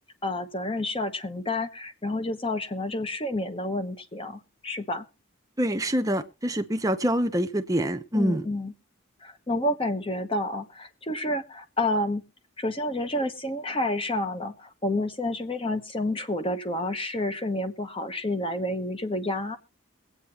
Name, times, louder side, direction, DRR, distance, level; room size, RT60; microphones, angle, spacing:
voice 1, 0.2-5.0 8.1-8.7 9.2-12.2 12.6-19.6, left 1 dB, 25° left, 9 dB, 1.0 m, -29 dB
voice 2, 5.6-8.5, equal, 15° right, 7 dB, 0.8 m, -25 dB
22.5 x 8.7 x 2.9 m, 0.29 s
head